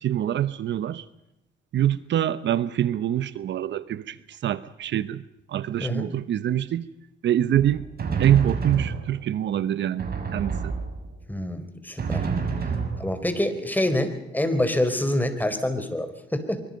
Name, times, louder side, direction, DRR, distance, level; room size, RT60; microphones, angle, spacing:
voice 1, 0.0-1.1 1.7-5.2 5.5-6.9 7.2-7.9 8.2-10.0 10.3-10.7, right 11 dB, 65° right, 14 dB, 1.0 m, -25 dB
Drum, 7.5-9.4 10.0-11.3 12.0-13.5, right 5 dB, 50° right, 6.4 m, -29 dB
voice 2, 11.3-12.3 13.0-16.6, left 1 dB, 10° left, 8 dB, 4.0 m, -26 dB
25.0 x 24.5 x 5.3 m, 0.86 s
cardioid pair, 90°, 20 cm